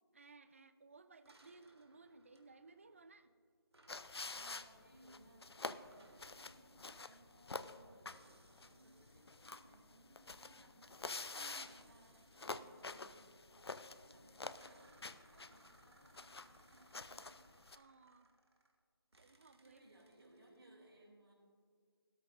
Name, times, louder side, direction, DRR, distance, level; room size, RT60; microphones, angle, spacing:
voice 1, 0.1-3.3 11.3-11.7 17.7-18.3 19.2-19.8, right 3 dB, 30° right, 12 dB, 0.5 m, -61 dB
sound 1, 1.3-3.3 3.7-7.7 8.1-10.9 11.5-14.0 14.6-18.8 19.1-20.6, right 2 dB, 85° right, 1.5 m, -70 dB
sound 2, 3.9-17.8, left 3 dB, 80° left, 0.6 m, -49 dB
voice 2, 4.3-17.4 19.6-21.3, right 1 dB, 70° right, -4 dB, 3.0 m, -65 dB
15.5 x 13.0 x 2.6 m, 2.1 s
figure-of-eight pair, 165°, 13 cm